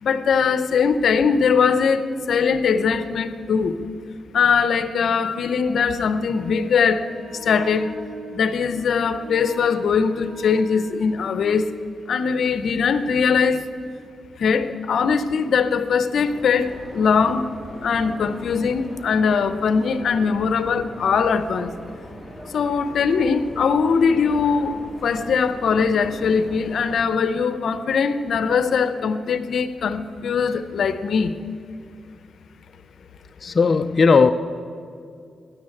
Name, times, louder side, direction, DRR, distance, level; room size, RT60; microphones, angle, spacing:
voice 1, 0.0-3.8 4.3-7.9 8.3-11.7 12.1-13.6 14.4-17.5 17.8-21.7 22.5-31.3, left 6 dB, 75° left, 12 dB, 0.7 m, -21 dB
Wind instrument woodwind instrument, 6.3-11.8, right 2 dB, 55° right, 3.5 m, -41 dB
sound 1, 16.1-27.0, equal, 10° right, 3.3 m, -39 dB
voice 2, 33.4-34.3, left 5 dB, 45° left, 7 dB, 0.5 m, -16 dB
13.0 x 10.5 x 8.6 m, 2.4 s
cardioid pair, 80°, 0 cm